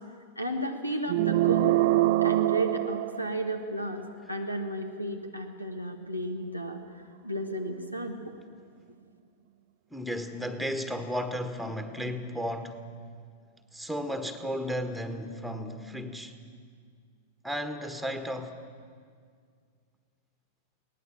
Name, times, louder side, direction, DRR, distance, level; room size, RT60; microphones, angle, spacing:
voice 1, 0.4-1.8 2.2-6.8 7.2-8.2, right 1 dB, 90° left, 1.7 m, -33 dB
sound 1, 1.1-3.7, right 17 dB, 50° right, 0.6 m, -25 dB
voice 2, 9.9-12.8 13.7-16.4 17.4-18.6, equal, ahead, 1.5 m, -34 dB
22.5 x 18.0 x 7.4 m
figure-of-eight pair, 95°, 0 cm